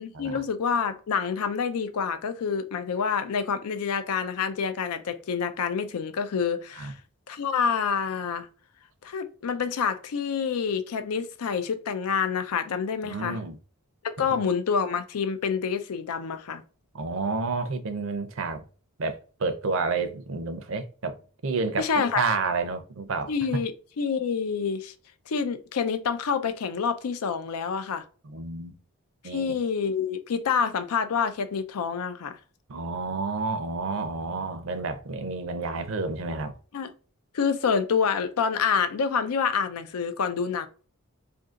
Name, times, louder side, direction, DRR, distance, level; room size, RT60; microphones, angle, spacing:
voice 1, 0.0-6.9 7.3-8.5 9.0-13.4 14.0-16.6 21.8-22.3 23.3-24.9 25.3-28.0 29.2-32.4 36.7-36.9 37.3-40.7, left 6 dB, 85° left, 0.5 m, -27 dB
voice 2, 13.0-13.6 16.9-18.6 19.0-21.1 21.4-23.3 28.2-28.7 29.2-29.5 32.7-36.5, right 4 dB, 60° right, 0.5 m, -30 dB
2.7 x 2.6 x 3.6 m
head